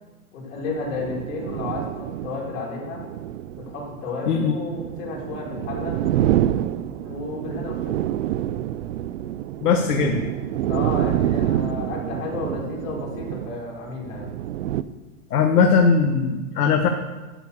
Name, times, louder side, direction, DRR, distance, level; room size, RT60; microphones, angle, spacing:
voice 1, 0.3-3.0 3.5-6.4 7.0-7.9 10.7-14.3, left 3 dB, 60° left, -3 dB, 5.3 m, -32 dB
sound 1, 0.6-14.8, right 12 dB, 60° right, 0.7 m, -27 dB
voice 2, 9.6-10.2 15.3-16.9, left 5 dB, 85° left, 3 dB, 1.6 m, -19 dB
13.0 x 7.4 x 6.8 m, 1.2 s
hypercardioid pair, 145°, 45 cm